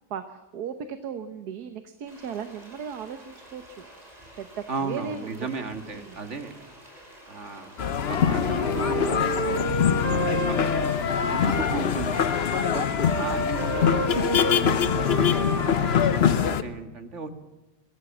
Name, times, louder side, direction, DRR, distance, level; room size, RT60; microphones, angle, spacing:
voice 1, 0.1-3.9 4.4-5.5 6.0-6.2 12.6-12.8, right 7 dB, 70° right, 9 dB, 1.6 m, -36 dB
sound 1, 2.1-15.8, equal, 20° right, 6.4 m, -49 dB
voice 2, 4.7-6.5 7.3-7.8 8.1-9.3 10.5-10.6 11.2-17.3, right 4 dB, 45° right, 8 dB, 2.1 m, -35 dB
sound 2, 7.8-16.6, left 8 dB, 45° left, 0.9 m, -24 dB
Wind instrument woodwind instrument, 8.1-11.8 12.1-16.1, equal, 90° left, 3.4 m, -30 dB
23.0 x 16.0 x 7.3 m, 1.1 s
omnidirectional pair, 1.7 m